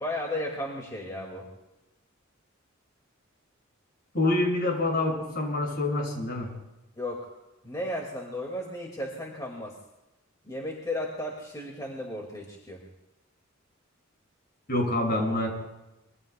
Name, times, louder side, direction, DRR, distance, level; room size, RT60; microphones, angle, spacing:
voice 1, 0.0-1.5 7.0-7.3 7.6-9.8 10.4-12.8, left 1 dB, 20° left, -1 dB, 2.1 m, -34 dB
voice 2, 4.1-6.5 14.7-15.6, left 2 dB, 50° left, -1 dB, 6.6 m, -26 dB
26.0 x 22.5 x 2.3 m, 0.98 s
head